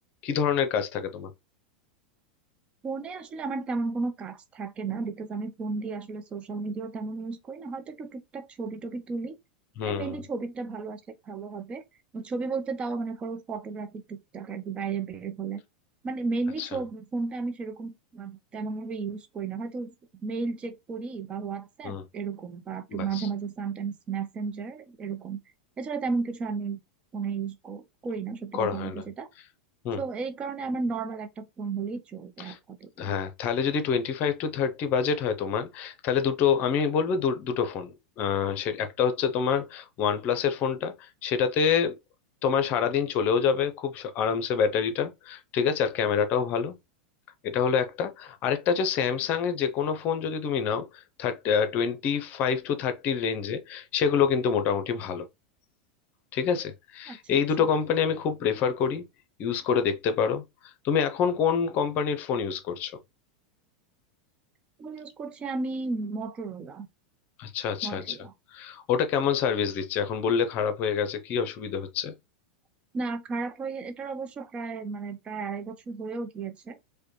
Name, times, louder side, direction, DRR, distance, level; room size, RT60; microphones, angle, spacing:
voice 1, 0.2-1.3 9.8-10.2 16.6-16.7 21.8-22.0 22.9-23.3 28.6-29.0 29.8-30.0 32.5-32.6 33.0-41.9 42.4-46.7 47.4-55.3 56.3-59.0 59.4-60.4 60.8-63.0 67.4-68.2 68.5-72.1, left 7 dB, 45° left, 0.7 m, -27 dB
voice 2, 2.8-9.4 9.8-11.8 12.1-15.6 16.0-25.4 25.8-26.8 27.1-29.3 30.0-33.1 57.1-57.7 64.8-66.9 67.8-68.3 72.9-76.8, right 4 dB, 30° right, 0.7 m, -34 dB
4.8 x 2.2 x 3.1 m
hypercardioid pair, 95°, 4 cm